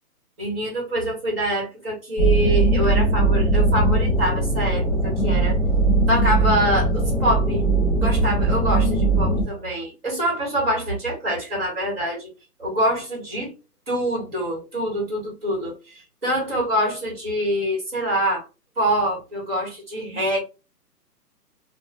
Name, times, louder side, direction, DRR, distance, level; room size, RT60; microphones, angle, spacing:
voice 1, 0.4-5.6 6.1-7.7 8.0-12.3 12.6-13.5 13.9-18.4 18.8-20.4, equal, 35° right, -3 dB, 1.8 m, -25 dB
sound 1, 2.2-9.4, right 2 dB, ahead, 1.2 m, -20 dB
3.8 x 2.5 x 2.4 m, 0.29 s
hypercardioid pair, 175°, 49 cm